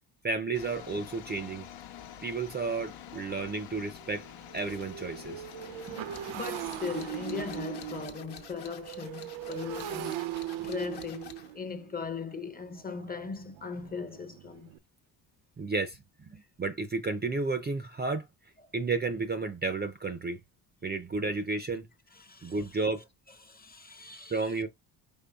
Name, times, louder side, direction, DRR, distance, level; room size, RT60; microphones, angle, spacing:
voice 1, 0.2-1.7 2.2-4.3 4.5-5.4 5.9-6.0 10.6-10.7 15.6-18.3 18.7-20.4 20.8-21.9 22.4-23.0 24.3-24.7, right 3 dB, 20° right, 0.5 m, -32 dB
sound 1, 0.5-8.1, left 10 dB, 80° left, 1.0 m, -48 dB
Motorcycle, 2.2-2.3 2.7-2.9 3.2-14.8, right 13 dB, 70° right, 0.6 m, -40 dB
sound 2, 4.5-11.6, left 8 dB, 55° left, 1.1 m, -50 dB
voice 2, 6.3-10.2 10.6-14.7 22.1-22.9 23.4-24.6, left 5 dB, 20° left, 0.7 m, -39 dB
5.3 x 3.9 x 2.3 m
cardioid pair, 125°, 48 cm